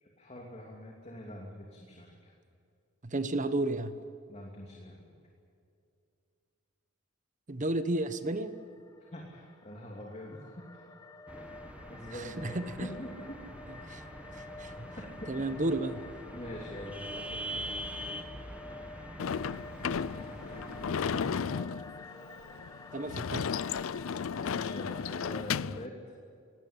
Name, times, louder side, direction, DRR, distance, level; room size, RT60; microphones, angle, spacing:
voice 1, 0.0-2.3 4.3-5.0 9.1-10.9 11.9-13.4 15.0-15.3 16.3-17.7 21.0-21.4 24.4-25.9, equal, 35° left, -1 dB, 2.8 m, -44 dB
voice 2, 3.0-3.9 7.5-8.5 12.1-12.9 13.9-14.0 14.3-14.9 15.3-16.0 22.9-23.5, right 2 dB, 40° right, 11 dB, 1.1 m, -32 dB
sound 1, 8.1-25.4, left 2 dB, 15° left, 1.2 m, -49 dB
sound 2, 11.3-21.1, right 1 dB, 5° right, 1.6 m, -44 dB
Sliding door / Slam, 19.2-25.9, left 6 dB, 75° left, 0.5 m, -34 dB
19.0 x 17.0 x 10.0 m, 2.5 s
head